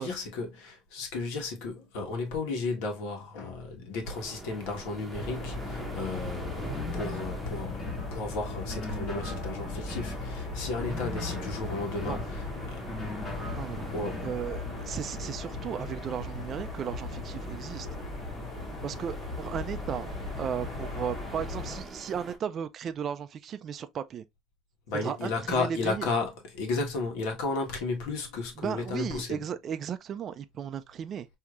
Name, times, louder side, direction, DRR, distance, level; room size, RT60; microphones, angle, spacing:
voice 1, 0.0-7.8 8.1-12.8 13.9-14.2 24.9-29.4, left 3 dB, 85° left, 1.4 m, -33 dB
sound 1, 4.0-22.4, right 2 dB, 10° right, 0.9 m, -45 dB
sound 2, 5.1-21.8, left 3 dB, 50° left, 2.5 m, -38 dB
sound 3, 6.6-8.1 8.7-10.2 10.7-12.3 12.8-14.4, left 2 dB, 30° left, 1.6 m, -39 dB
voice 2, 13.4-17.9 18.8-24.2 25.0-26.1 28.6-31.3, right 8 dB, 40° right, 0.3 m, -35 dB
4.6 x 2.8 x 2.4 m
cardioid pair, 130°, 0 cm